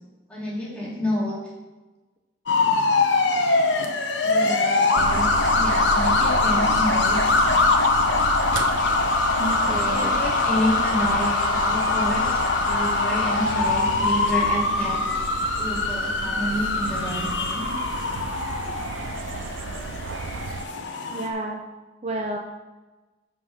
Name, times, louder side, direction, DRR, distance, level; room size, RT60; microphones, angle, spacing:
voice 1, 0.3-1.4 4.2-5.3 5.6-7.2 9.8-15.0 15.6-17.8, equal, 5° left, -6 dB, 2.4 m, -29 dB
sound 1, 2.5-21.3, left 3 dB, 70° left, 1.0 m, -23 dB
sound 2, 4.9-20.6, right 4 dB, 75° right, 0.4 m, -34 dB
sound 3, 8.8-14.5, left 4 dB, 40° left, 0.6 m, -40 dB
voice 2, 9.4-10.2 21.1-21.6 22.0-22.4, right 2 dB, 35° right, 1 dB, 0.6 m, -30 dB
7.3 x 5.8 x 5.9 m, 1.2 s
head